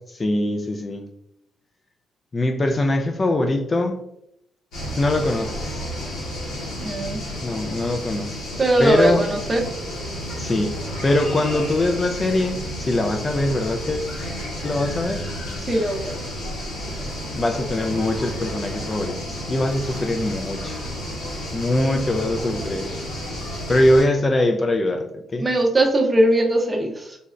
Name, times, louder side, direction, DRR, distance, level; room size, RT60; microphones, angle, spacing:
voice 1, 0.1-1.1 2.3-4.0 5.0-5.9 7.4-9.4 10.4-14.1 14.6-15.3 17.3-20.8 21.5-22.9 23.7-25.5, left 1 dB, 30° left, 5 dB, 0.3 m, -22 dB
sound 1, 4.7-24.1, equal, 85° left, 1.2 m, -31 dB
voice 2, 6.8-7.2 8.6-9.6 15.6-16.2 21.7-22.9 25.4-27.2, right 1 dB, 25° right, 2 dB, 0.6 m, -21 dB
3.9 x 2.0 x 2.4 m, 0.78 s
cardioid pair, 90°, 0 cm